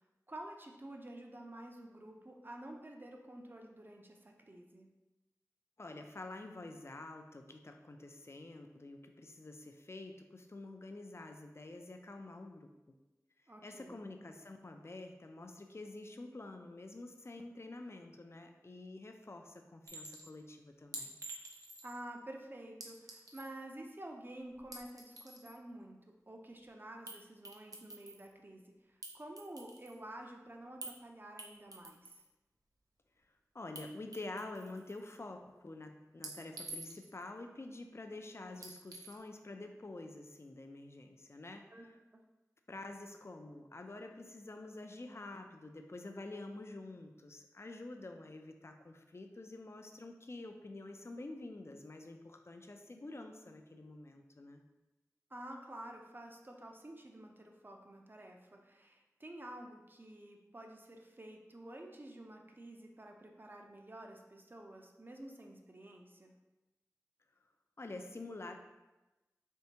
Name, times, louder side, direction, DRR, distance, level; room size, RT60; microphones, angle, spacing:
voice 1, 0.3-4.9 13.5-14.0 21.8-26.0 26.3-28.6 29.1-32.2 41.7-41.9 55.3-66.3, right 1 dB, 35° right, 2 dB, 0.6 m, -50 dB
voice 2, 5.8-12.7 13.6-21.2 33.5-41.9 42.7-54.6 67.8-68.6, left 2 dB, 45° left, 4 dB, 0.4 m, -48 dB
Chink clink, 19.9-20.3 20.9-22.0 22.8-23.5 24.6-25.5 27.1-27.2 27.4-28.3 29.0-30.0 30.8-31.0 31.4-32.2 33.7-33.8 34.1-35.0 36.2-37.2 38.6-39.2, right 2 dB, 80° right, 0.5 m, -48 dB
4.5 x 3.4 x 2.8 m, 1.1 s
wide cardioid pair, 60°, 6 cm